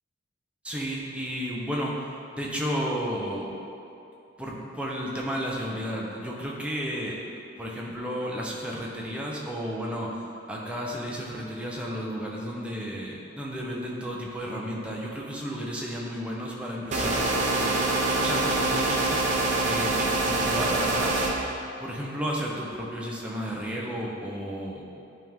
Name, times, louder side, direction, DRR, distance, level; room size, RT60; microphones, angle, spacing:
voice 1, 0.6-2.0 2.3-3.5 4.4-7.2 7.6-10.2 10.5-19.2 19.6-21.2 21.8-24.8, equal, 5° right, -4 dB, 0.8 m, -33 dB
sound 1, 16.9-21.3, right 2 dB, 40° right, 0.8 m, -25 dB
10.5 x 3.6 x 3.6 m, 2.7 s
head